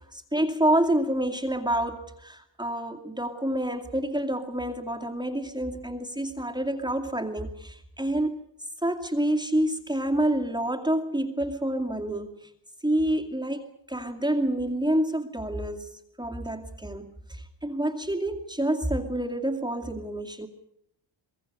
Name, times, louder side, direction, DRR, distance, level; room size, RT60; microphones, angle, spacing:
voice 1, 0.0-8.4 8.8-12.5 12.8-20.5, right 1 dB, 10° right, 2 dB, 2.4 m, -28 dB
24.0 x 21.5 x 6.8 m, 0.79 s
cardioid pair, 90°, 48 cm